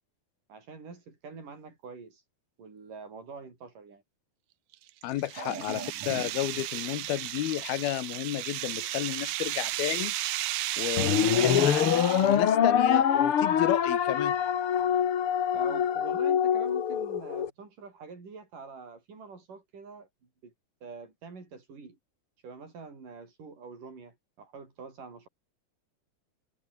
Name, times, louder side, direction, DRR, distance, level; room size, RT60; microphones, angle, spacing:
voice 1, 0.5-2.2 2.6-4.0 5.3-6.6 15.5-20.1 20.4-20.5 20.8-22.0 22.4-25.3, right 4 dB, 50° right, 8.4 m, -44 dB
sound 1, 4.7-12.5, right 15 dB, 80° right, 1.8 m, -34 dB
voice 2, 5.0-5.8 6.1-10.1 10.8-14.4, left 14 dB, 70° left, 2.7 m, -32 dB
sound 2, 11.0-17.5, left 8 dB, 55° left, 1.6 m, -25 dB
omnidirectional pair, 4.8 m